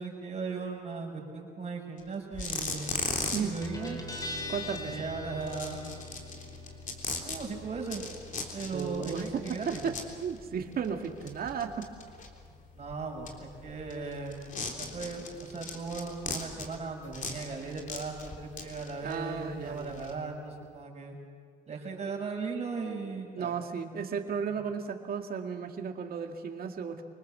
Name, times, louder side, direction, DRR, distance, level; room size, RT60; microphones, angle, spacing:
voice 1, 0.0-4.0 4.9-5.9 7.2-8.0 8.5-9.8 12.7-14.4 14.8-21.2 21.7-23.5, right 4 dB, 35° right, 0 dB, 6.3 m, -37 dB
sound 1, 2.0-2.1 2.3-20.1, left 3 dB, 40° left, 3.5 m, -39 dB
Guitar, 3.6-20.8, left 2 dB, 20° left, 3.2 m, -47 dB
voice 2, 4.5-5.0 8.7-9.9 10.2-11.8 19.0-20.0 23.3-27.0, right 6 dB, 50° right, 4 dB, 2.2 m, -34 dB
25.0 x 20.0 x 7.5 m, 2.1 s
supercardioid pair, 80°, 20 cm